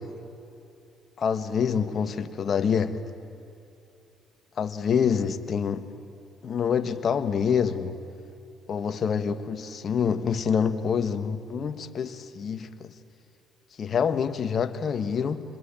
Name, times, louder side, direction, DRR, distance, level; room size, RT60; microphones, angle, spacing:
voice 1, 1.2-3.0 4.6-5.8 6.4-8.0 8.7-12.9 13.8-15.4, left 7 dB, 50° left, 10 dB, 1.6 m, -26 dB
26.0 x 21.0 x 8.9 m, 2.8 s
supercardioid pair, 70°, 0 cm